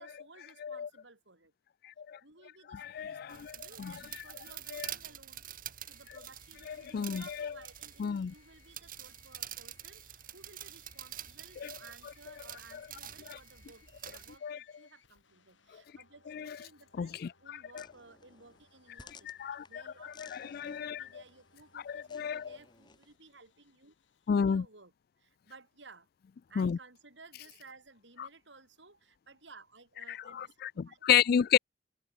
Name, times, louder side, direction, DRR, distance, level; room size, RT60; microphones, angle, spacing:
voice 1, 0.0-1.5 2.2-19.3 19.7-23.9 24.3-26.1 26.5-30.6 30.8-31.0, right 3 dB, 70° right, 4.5 m, -57 dB
voice 2, 1.8-2.2 2.7-3.5 3.8-3.9 4.7-4.9 6.7-7.5 8.0-8.3 11.6-11.7 13.3-13.4 14.4-14.6 16.3-16.6 17.0-17.8 19.4-19.8 20.2-21.1 21.9-22.5 24.3-24.6 26.6-26.8 28.2-28.3 30.1-31.6, left 8 dB, 55° left, 0.3 m, -31 dB
sound 1, 3.3-14.4, right 11 dB, 50° right, 4.1 m, -47 dB
sound 2, 5.8-24.3, left 6 dB, 85° left, 8.0 m, -68 dB
sound 3, 17.7-23.2, left 4 dB, 25° left, 2.4 m, -59 dB
head